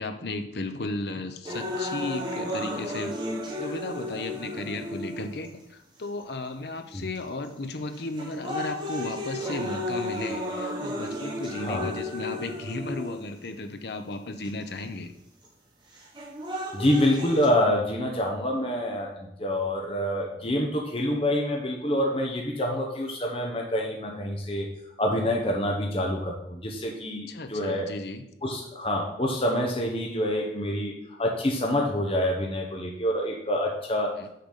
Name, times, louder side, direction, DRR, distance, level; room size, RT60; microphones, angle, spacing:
voice 1, 0.0-3.2 3.6-15.1 27.3-28.2 34.2-34.3, left 2 dB, 70° left, 7 dB, 0.7 m, -35 dB
sound 1, 1.5-5.5 6.2-6.3 7.2-7.5 7.9-13.5 14.4-14.5 16.0-17.5, left 1 dB, 25° right, 1.4 m, -33 dB
voice 2, 11.6-11.9 16.7-24.7 25.0-27.9 28.4-30.9 31.2-34.1, left 1 dB, 30° left, 0 dB, 0.8 m, -27 dB
6.6 x 4.0 x 6.5 m, 0.80 s
head